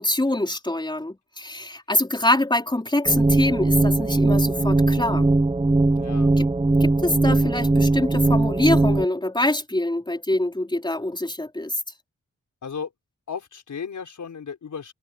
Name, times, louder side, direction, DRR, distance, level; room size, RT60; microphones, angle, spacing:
voice 1, 0.0-5.3 6.4-6.5 6.8-11.8, left 1 dB, 15° left, 4.0 m, -24 dB
sound 1, 3.1-9.1, right 2 dB, 20° right, 1.1 m, -20 dB
voice 2, 5.9-6.3 12.6-12.9 13.3-14.9, left 6 dB, 90° left, 5.4 m, -35 dB
wide cardioid pair, 90°, 29 cm